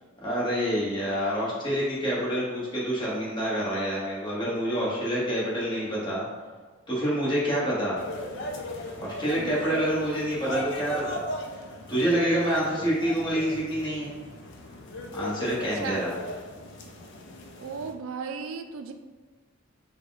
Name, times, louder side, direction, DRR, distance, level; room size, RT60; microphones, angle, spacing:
voice 1, 0.2-6.2 6.9-8.0 8.9-11.2 11.9-14.1 15.1-16.1, equal, 25° left, -7 dB, 1.3 m, -27 dB
sound 1, 8.0-17.9, left 1 dB, 60° left, 0.5 m, -38 dB
voice 2, 9.4-9.9 15.5-16.1 17.6-18.9, right 5 dB, 85° right, 6 dB, 0.4 m, -36 dB
4.7 x 2.3 x 3.9 m, 1.4 s
head